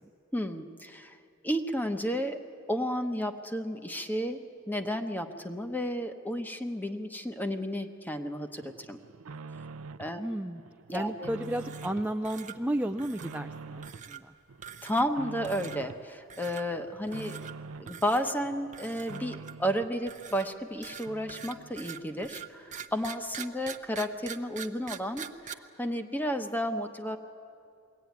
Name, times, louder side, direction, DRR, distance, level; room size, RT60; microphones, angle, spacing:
voice 1, 0.3-1.2 1.4-2.4 2.7-4.4 4.7-9.0 10.0-10.2 10.9-11.3 14.8-17.4 17.8-22.6 22.9-25.5 25.8-27.2, equal, 10° left, 7 dB, 1.0 m, -32 dB
sound 1, 8.6-10.2 10.6-12.1 12.5-14.1 14.5-16.1 16.4-18.0 18.4-20.0 20.4-20.5 20.8-20.9 21.0-21.9 22.2-22.3, right 4 dB, 80° right, 0.6 m, -46 dB
voice 2, 10.2-10.6 10.9-14.3, right 1 dB, 5° right, 5 dB, 0.4 m, -33 dB
sound 2, 11.4-12.0 12.2-12.6 13.0-13.4 13.8-14.2 14.6-15.2 15.4-15.8 16.3-16.6 17.1-17.5 17.9-18.3 18.7-19.7 20.1-25.5, right 8 dB, 35° right, 0.8 m, -44 dB
22.0 x 17.5 x 9.5 m, 2.5 s
head